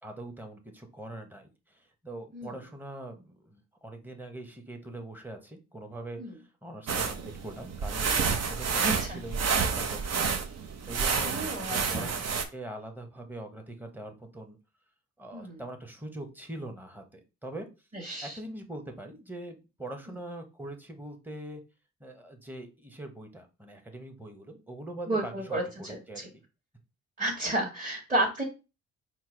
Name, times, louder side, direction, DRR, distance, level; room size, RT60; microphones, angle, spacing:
voice 1, 0.0-14.6 15.2-17.7 18.2-21.6 22.0-26.4, right 1 dB, 5° right, 4 dB, 1.0 m, -43 dB
sound 1, 6.9-12.4, right 5 dB, 55° right, 0.8 m, -29 dB
voice 2, 8.7-9.2 11.2-12.1 15.3-15.6 17.9-18.4 25.1-26.3 27.2-28.4, right 1 dB, 25° right, -3 dB, 1.6 m, -32 dB
4.5 x 2.2 x 4.5 m, 0.29 s
cardioid pair, 90°, 30 cm